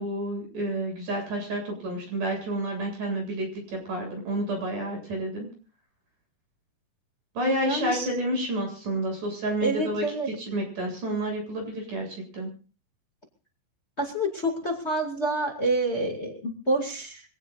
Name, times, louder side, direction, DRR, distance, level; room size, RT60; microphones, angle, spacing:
voice 1, 0.0-3.5 3.9-5.5 7.4-10.0 10.5-12.1 12.3-12.5, right 1 dB, 55° right, 2 dB, 9.2 m, -29 dB
voice 2, 7.6-8.1 9.6-10.3 14.0-17.2, right 1 dB, 20° left, 1 dB, 2.2 m, -27 dB
25.0 x 17.5 x 2.6 m, 0.38 s
omnidirectional pair, 4.5 m